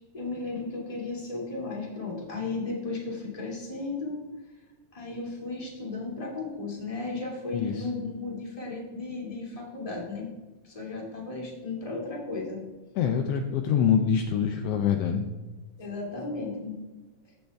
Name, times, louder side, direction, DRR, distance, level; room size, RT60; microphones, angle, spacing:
voice 1, 0.1-4.2 4.9-10.3 10.6-12.6 15.8-16.8, left 3 dB, 15° left, -3 dB, 1.6 m, -35 dB
voice 2, 7.5-7.9 13.0-15.3, left 7 dB, 85° left, 5 dB, 1.3 m, -25 dB
14.0 x 5.3 x 3.4 m, 1.2 s
omnidirectional pair, 3.4 m